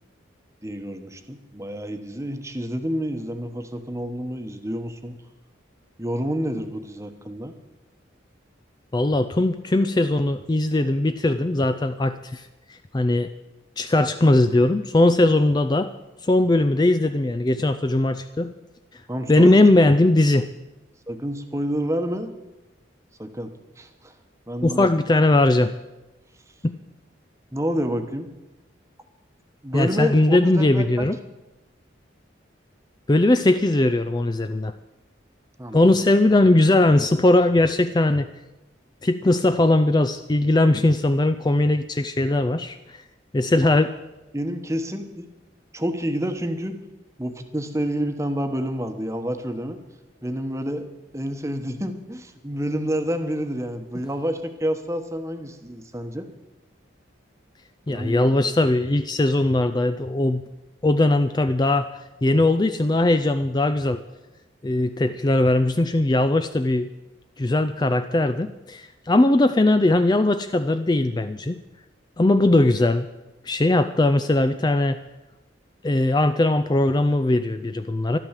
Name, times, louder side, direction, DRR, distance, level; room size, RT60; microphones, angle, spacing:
voice 1, 0.6-5.2 6.0-7.5 19.1-19.6 21.1-22.3 23.2-23.5 23.8-24.1 24.5-24.9 27.5-28.3 29.6-31.1 35.6-35.9 44.3-45.3 45.7-46.7 47.2-49.8 50.2-50.9 51.1-56.3 57.9-58.6, equal, 15° right, 7 dB, 1.1 m, -28 dB
voice 2, 8.9-13.3 13.8-15.9 16.2-18.5 18.9-19.0 19.3-20.5 24.6-25.7 26.6-26.7 29.7-31.2 33.1-34.7 35.7-38.3 39.0-43.0 43.3-43.9 57.9-60.4 60.8-64.0 64.6-66.9 67.4-71.6 72.2-73.1 73.4-75.0 75.8-78.2, left 2 dB, 20° left, 9 dB, 0.4 m, -20 dB
12.5 x 12.0 x 7.4 m, 1.0 s
head